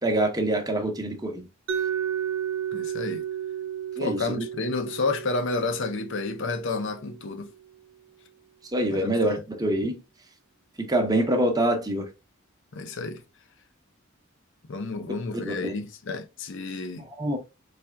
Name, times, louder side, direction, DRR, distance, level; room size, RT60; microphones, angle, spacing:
voice 1, 0.0-1.4 4.0-4.4 8.7-10.0 10.8-12.1 15.4-15.7 17.2-17.4, right 1 dB, 20° right, 0.8 m, -25 dB
Mallet percussion, 1.7-7.5, right 9 dB, 65° right, 0.5 m, -33 dB
voice 2, 2.7-3.2 4.0-7.5 8.9-9.1 12.7-13.2 14.7-17.0, left 3 dB, 60° left, 0.6 m, -30 dB
4.1 x 3.3 x 2.3 m
head